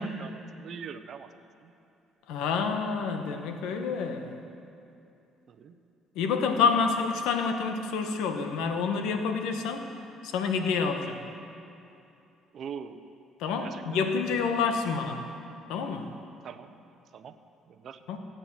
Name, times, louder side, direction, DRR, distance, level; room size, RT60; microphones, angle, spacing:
voice 1, 0.0-1.7 5.5-5.8 12.5-13.0 13.6-13.8 16.4-16.7 17.1-17.4 17.7-18.0, right 7 dB, 55° right, 10 dB, 0.8 m, -43 dB
voice 2, 2.3-4.4 6.1-9.9 10.2-11.2 13.4-15.3 15.7-16.1 18.1-18.2, left 5 dB, 85° left, 6 dB, 1.3 m, -28 dB
17.0 x 8.9 x 7.6 m, 2.7 s
cardioid pair, 110°, 0 cm